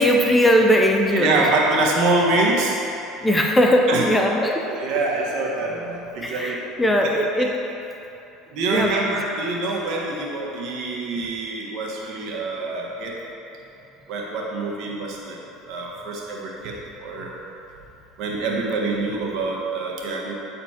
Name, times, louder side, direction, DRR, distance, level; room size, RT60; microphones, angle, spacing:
voice 1, 0.0-1.5 3.2-4.6 4.9-5.0 6.2-7.6 8.7-9.2, equal, 10° left, 2 dB, 0.6 m, -19 dB
voice 2, 1.1-2.8 3.9-4.1 4.7-6.6 7.0-7.1 8.5-13.2 14.1-15.4 15.7-16.7 17.0-17.3 18.2-20.3, right 2 dB, 60° right, -2 dB, 1.4 m, -25 dB
8.6 x 4.2 x 4.3 m, 2.9 s
supercardioid pair, 105°, 0 cm